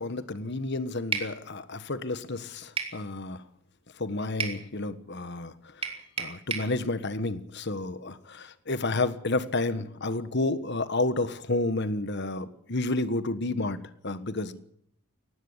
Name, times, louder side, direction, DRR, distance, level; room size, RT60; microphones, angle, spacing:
voice 1, 0.0-3.4 4.0-5.5 5.8-13.8 14.0-14.6, left 2 dB, 55° left, 13 dB, 1.5 m, -30 dB
sound 1, 1.1-1.3 2.8-3.0 4.4-4.6 5.8-6.7, right 5 dB, 25° right, 3.2 m, -31 dB
19.0 x 16.0 x 9.7 m, 0.69 s
head